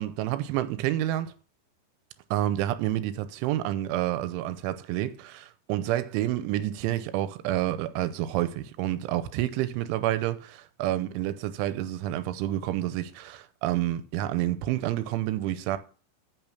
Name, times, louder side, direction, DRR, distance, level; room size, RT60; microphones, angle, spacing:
voice 1, 0.0-1.3 2.3-15.8, right 13 dB, 85° right, 3.1 m, -29 dB
9.0 x 6.2 x 6.9 m
omnidirectional pair, 5.5 m